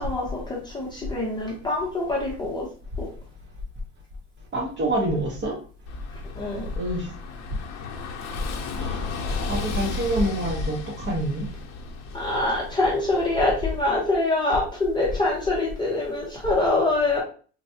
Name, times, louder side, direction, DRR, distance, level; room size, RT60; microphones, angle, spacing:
voice 1, 0.0-2.7 3.0-3.1 6.4-6.7 12.1-17.2, left 2 dB, 10° left, -5 dB, 0.8 m, -25 dB
voice 2, 4.5-5.5 6.7-7.1 8.8-9.0 9.4-11.5, right 1 dB, 30° right, -1 dB, 0.9 m, -26 dB
Car passing by / Engine, 5.9-13.8, left 4 dB, 50° left, 0.8 m, -36 dB
4.0 x 2.2 x 2.7 m, 0.40 s
supercardioid pair, 125°, 35 cm